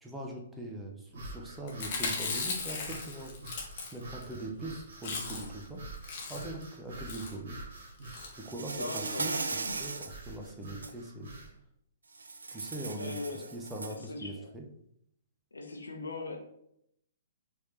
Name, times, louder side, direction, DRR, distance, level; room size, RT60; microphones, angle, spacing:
voice 1, 0.0-3.3 3.9-5.8 6.3-7.6 8.3-9.4 9.8-11.3 12.5-13.2 13.5-14.6, right 1 dB, 5° right, 0 dB, 0.7 m, -41 dB
sound 1, 1.1-11.5, right 2 dB, 60° right, 1.2 m, -47 dB
Chewing mastication, 1.7-4.3 4.6-4.7 4.9-5.6 5.9-6.6 7.1-7.4 8.0-8.3 9.0-9.2 9.5-9.6 9.8-9.9, left 4 dB, 45° left, 1.0 m, -37 dB
Insect, 8.4-10.2 10.6-10.9 12.2-14.0, right 3 dB, 75° right, 0.4 m, -37 dB
voice 2, 8.8-9.3 13.0-13.6 13.9-14.5 15.5-16.4, left 2 dB, 80° left, 3 dB, 0.8 m, -40 dB
4.8 x 2.9 x 3.1 m, 0.75 s
figure-of-eight pair, 120°, 0 cm